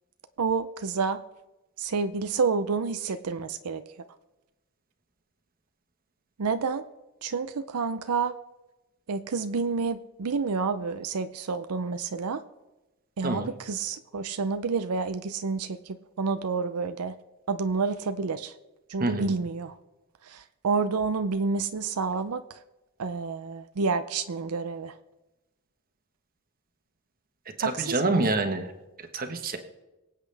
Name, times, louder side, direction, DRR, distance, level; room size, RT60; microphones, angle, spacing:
voice 1, 0.4-1.2 1.8-3.8 6.4-6.8 7.2-8.3 9.1-12.4 13.2-15.7 16.2-17.1 17.5-18.4 18.9-19.7 20.6-22.4 23.0-24.9 27.6-27.7 28.1-28.2, right 4 dB, 90° right, 10 dB, 0.6 m, -28 dB
voice 2, 19.0-19.3 27.6-28.7 29.1-29.6, right 2 dB, 40° right, 6 dB, 1.2 m, -27 dB
24.0 x 8.3 x 3.4 m, 1.0 s
head